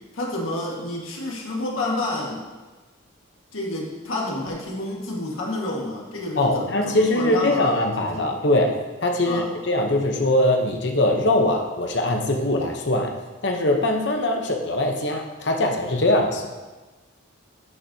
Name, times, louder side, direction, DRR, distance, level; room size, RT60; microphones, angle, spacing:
voice 1, 0.1-2.4 3.5-8.4 9.2-9.5, left 2 dB, 85° left, -3 dB, 1.8 m, -29 dB
voice 2, 6.4-13.1 13.4-16.5, left 1 dB, 60° left, 3 dB, 0.9 m, -22 dB
10.5 x 6.2 x 2.8 m, 1.2 s
head